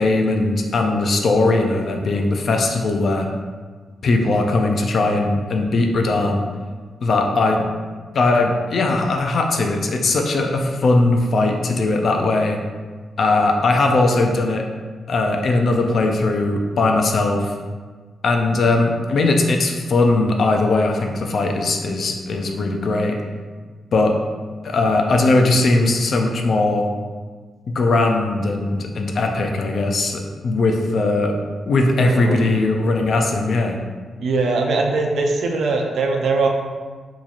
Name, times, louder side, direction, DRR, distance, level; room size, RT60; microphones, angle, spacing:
voice 1, 0.0-3.3 4.0-6.4 7.0-7.7 8.1-12.6 13.2-14.6 15.1-17.5 18.2-23.2 23.9-24.2 24.6-26.9 27.7-31.3 31.7-33.8, left 2 dB, 50° left, 3 dB, 0.4 m, -19 dB
voice 2, 32.0-32.4 34.2-36.5, right 3 dB, 70° right, 2 dB, 0.4 m, -21 dB
2.9 x 2.4 x 3.9 m, 1.5 s
wide cardioid pair, 145°, 0 cm